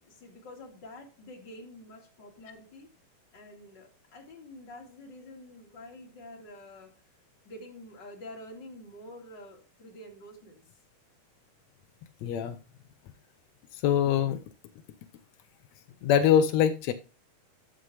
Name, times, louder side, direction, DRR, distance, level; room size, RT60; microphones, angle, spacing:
voice 1, 0.0-2.9 3.3-6.9 7.4-10.6, left 1 dB, 35° left, 2.6 m, -47 dB
voice 2, 12.2-12.6 13.7-14.4 16.0-16.9, left 9 dB, 85° left, 1.5 m, -23 dB
12.5 x 6.4 x 3.3 m
omnidirectional pair, 3.9 m